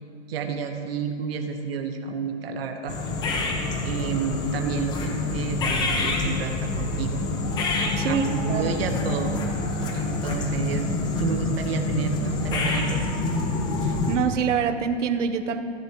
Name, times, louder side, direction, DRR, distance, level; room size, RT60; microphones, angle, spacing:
voice 1, 0.3-3.0 3.8-7.2 8.0-9.4 9.9-10.9 11.2-13.2, right 6 dB, 55° right, 5 dB, 1.3 m, -30 dB
sound 1, 2.9-14.2, left 2 dB, 10° left, 0.8 m, -27 dB
voice 2, 8.0-8.7 13.8-15.6, right 7 dB, 85° right, 8 dB, 1.3 m, -26 dB
28.0 x 11.0 x 3.1 m, 2.5 s
hypercardioid pair, 170°, 36 cm